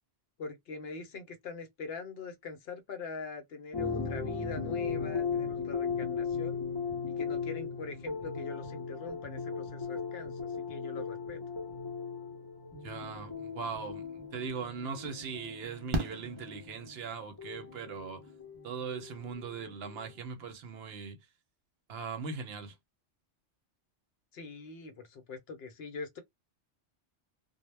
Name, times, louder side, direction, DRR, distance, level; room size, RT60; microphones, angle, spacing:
voice 1, 0.4-6.6 7.1-11.4 24.3-26.2, left 4 dB, 65° left, 0.8 m, -43 dB
sound 1, 3.7-20.1, left 5 dB, 25° left, 0.6 m, -37 dB
voice 2, 12.8-18.2 18.6-21.2 21.9-22.8, right 5 dB, 65° right, 0.8 m, -40 dB
Fireworks, 14.2-14.3 15.9-17.2 19.0-19.1 19.3-19.4, right 1 dB, 45° right, 0.3 m, -36 dB
2.1 x 2.0 x 3.1 m
omnidirectional pair, 1.2 m